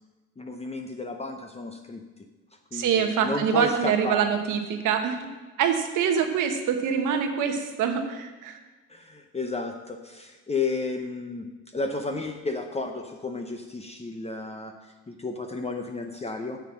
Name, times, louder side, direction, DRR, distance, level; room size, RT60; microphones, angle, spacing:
voice 1, 0.4-2.0 2.7-4.4 8.9-11.5 11.7-14.7 15.1-16.6, left 3 dB, 20° left, 4 dB, 0.8 m, -32 dB
voice 2, 2.7-5.2 5.6-8.6, right 7 dB, 90° right, 6 dB, 1.2 m, -25 dB
9.1 x 6.9 x 5.9 m, 1.2 s
cardioid pair, 90°, 30 cm